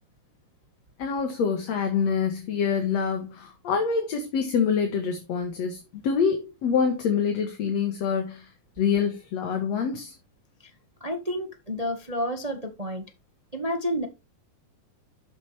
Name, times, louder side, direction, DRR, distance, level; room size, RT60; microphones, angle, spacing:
voice 1, 1.0-8.5 8.8-10.1, left 6 dB, 55° left, 2.6 m, -26 dB
voice 2, 11.0-13.0 13.5-14.1, equal, 70° right, 0.3 m, -30 dB
13.0 x 7.6 x 3.5 m
omnidirectional pair, 4.2 m